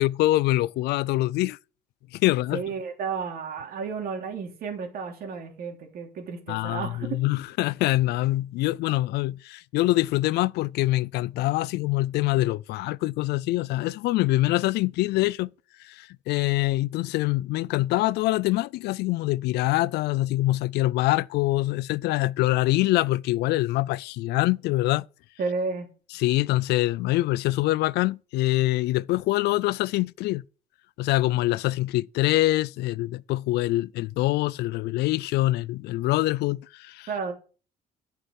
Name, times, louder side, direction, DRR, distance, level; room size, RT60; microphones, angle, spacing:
voice 1, 0.0-1.6 2.1-2.6 6.5-15.5 15.8-25.0 26.1-30.4 31.0-37.1, left 17 dB, 75° left, 0.4 m, -24 dB
voice 2, 2.5-7.2 25.4-25.9 37.1-37.3, right 5 dB, 60° right, 3.3 m, -32 dB
9.9 x 5.8 x 6.4 m
cardioid pair, 110°, 17 cm